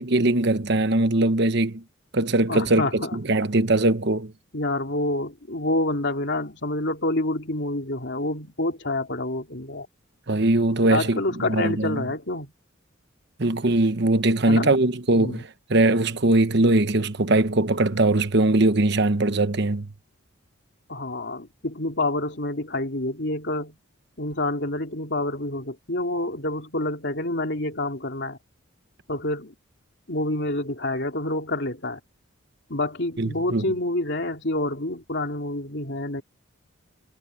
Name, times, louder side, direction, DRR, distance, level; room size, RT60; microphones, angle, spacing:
voice 1, 0.0-1.8 2.1-4.3 10.3-12.1 13.4-19.9 33.2-33.6, right 2 dB, 55° right, 1.1 m, -21 dB
voice 2, 2.5-3.2 4.5-9.9 10.9-12.5 14.5-14.7 15.1-15.4 20.9-23.7 24.2-28.4 29.1-29.5 30.1-32.0 32.7-36.2, left 2 dB, 55° left, 3.0 m, -28 dB
head